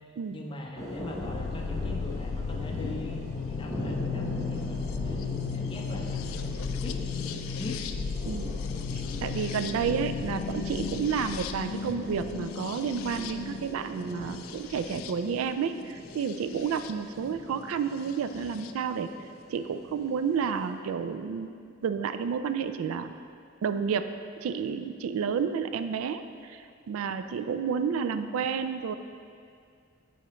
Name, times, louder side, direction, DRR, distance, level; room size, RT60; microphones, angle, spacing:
voice 1, 0.3-6.4 6.8-7.0 7.6-7.9 9.0-9.1, left 1 dB, 25° left, 0 dB, 0.6 m, -41 dB
sound 1, 0.7-20.7, equal, 15° right, 0.9 m, -41 dB
sound 2, 1.2-16.9 18.1-18.7, left 6 dB, 75° left, 0.3 m, -35 dB
voice 2, 8.2-8.6 8.9-19.1 19.5-21.6 21.8-23.1 23.6-24.1 24.4-28.9, right 6 dB, 80° right, 10 dB, 0.3 m, -30 dB
8.7 x 4.9 x 3.0 m, 2.3 s
head